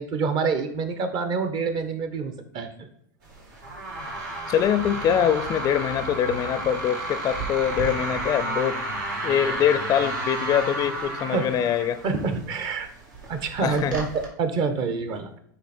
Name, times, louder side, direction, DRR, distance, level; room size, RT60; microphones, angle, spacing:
voice 1, 0.0-2.9 11.3-11.5 12.0-12.9 13.3-15.4, right 5 dB, 45° right, 9 dB, 1.1 m, -27 dB
sound 1, 3.2-14.3, right 2 dB, 80° right, 2.3 m, -32 dB
voice 2, 4.5-8.8 9.2-12.0 13.6-14.0, left 9 dB, 35° left, 12 dB, 0.5 m, -24 dB
9.5 x 3.2 x 4.3 m, 0.71 s
hypercardioid pair, 95°, 11 cm